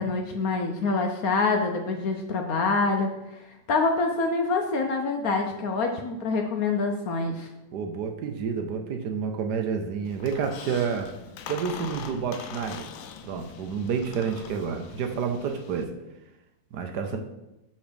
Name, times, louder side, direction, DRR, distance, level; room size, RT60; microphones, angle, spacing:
voice 1, 0.0-3.4 3.7-7.5, left 3 dB, 65° left, 3 dB, 1.0 m, -26 dB
voice 2, 7.7-11.1 11.5-12.9 13.2-15.9 16.7-17.2, right 6 dB, 70° right, 5 dB, 1.2 m, -29 dB
Squeak, 10.0-15.8, left 8 dB, 90° left, 1.4 m, -42 dB
6.3 x 5.3 x 5.1 m, 0.95 s
omnidirectional pair, 2.0 m